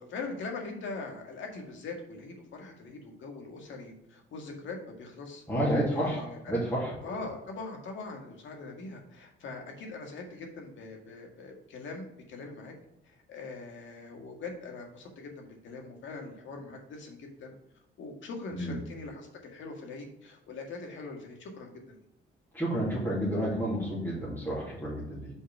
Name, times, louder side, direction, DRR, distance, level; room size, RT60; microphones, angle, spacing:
voice 1, 0.0-5.4 5.9-6.6 7.0-12.8 13.1-17.5 18.0-22.0, left 3 dB, 75° left, 2 dB, 1.9 m, -42 dB
voice 2, 5.5-7.1 18.5-18.8 22.5-25.3, equal, 10° left, -9 dB, 2.8 m, -30 dB
5.5 x 5.2 x 5.9 m, 0.85 s
cardioid pair, 90°, 20 cm